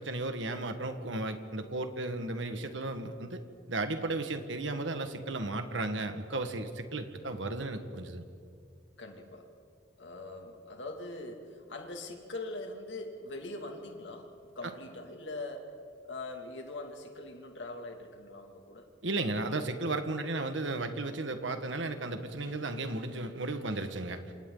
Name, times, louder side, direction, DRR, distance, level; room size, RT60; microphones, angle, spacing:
voice 1, 0.0-3.4 3.7-8.2 19.0-24.2, right 2 dB, 80° right, 7 dB, 1.7 m, -34 dB
voice 2, 9.0-9.5 10.0-15.8 16.0-18.9, left 2 dB, 70° left, 3 dB, 2.5 m, -42 dB
27.5 x 27.0 x 4.0 m, 2.4 s
head